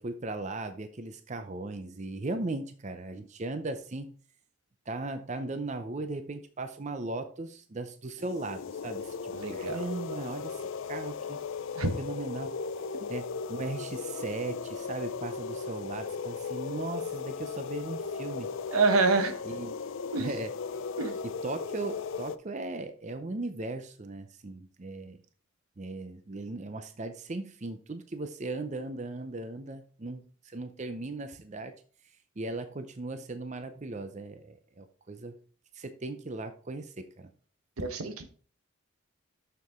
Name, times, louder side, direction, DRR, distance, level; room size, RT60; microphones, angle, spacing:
voice 1, 0.0-4.2 4.9-11.4 12.0-12.6 13.1-18.5 19.4-19.8 20.2-20.5 21.2-25.2 25.8-31.7 32.4-35.4 35.7-37.3, right 2 dB, 35° right, 9 dB, 0.5 m, -37 dB
sound 1, 8.2-22.4, left 5 dB, 65° left, 0.4 m, -37 dB
voice 2, 9.3-9.8 11.8-11.9 18.7-19.4 20.1-20.3 21.0-21.2 37.8-38.3, right 3 dB, 85° right, 7 dB, 1.1 m, -26 dB
6.7 x 6.7 x 3.6 m, 0.42 s
head